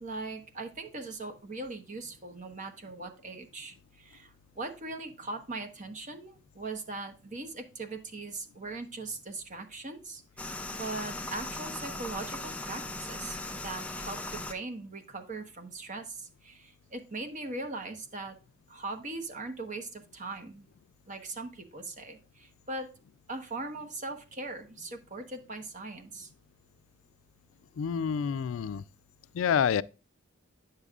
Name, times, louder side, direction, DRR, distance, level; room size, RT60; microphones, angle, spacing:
voice 1, 0.0-18.4 18.7-20.7 21.1-22.9 23.3-26.3, right 3 dB, 35° right, 1.1 m, -40 dB
sound 1, 10.4-14.5, left 2 dB, 5° left, 0.5 m, -38 dB
voice 2, 27.8-28.8 29.3-29.8, left 7 dB, 75° left, 0.3 m, -28 dB
9.1 x 6.7 x 2.4 m
head